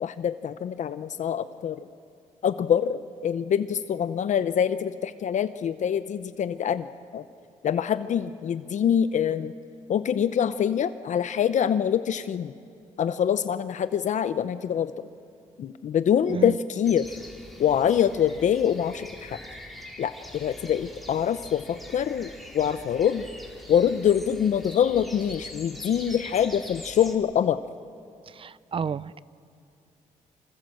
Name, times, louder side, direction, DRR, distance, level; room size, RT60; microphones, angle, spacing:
voice 1, 0.0-1.8 2.4-7.2 7.6-9.5 9.9-12.5 13.0-14.9 15.6-17.1 17.6-19.4 20.0-23.3 23.7-27.6, left 9 dB, 60° left, 12 dB, 0.8 m, -25 dB
sound 1, 16.8-27.2, equal, ahead, 3.7 m, -44 dB
voice 2, 28.3-29.2, right 6 dB, 40° right, 19 dB, 0.6 m, -31 dB
26.5 x 25.5 x 7.8 m, 2.5 s
cardioid pair, 95°, 14 cm